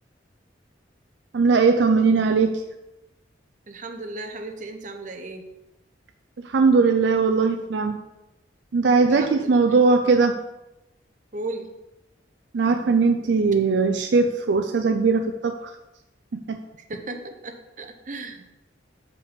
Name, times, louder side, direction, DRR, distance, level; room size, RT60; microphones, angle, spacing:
voice 1, 1.3-2.5 6.4-8.0 8.7-10.3 12.5-15.7 16.3-16.6, right 4 dB, 70° right, 6 dB, 0.4 m, -19 dB
voice 2, 3.7-5.5 9.1-9.8 11.3-11.7 16.9-18.5, right 2 dB, 45° right, 5 dB, 0.9 m, -36 dB
6.9 x 5.1 x 5.0 m, 0.96 s
head